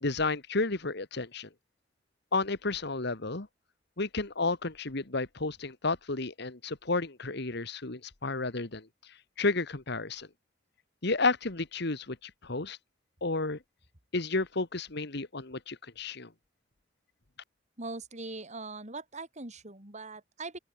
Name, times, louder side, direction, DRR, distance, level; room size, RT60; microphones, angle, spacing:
voice 1, 0.0-1.5 2.3-3.5 4.0-8.9 9.4-10.3 11.0-12.8 13.2-13.6 14.1-16.3, left 3 dB, 65° left, 1.9 m, -32 dB
voice 2, 17.8-20.6, right 3 dB, 40° right, 4.7 m, -41 dB
open air
head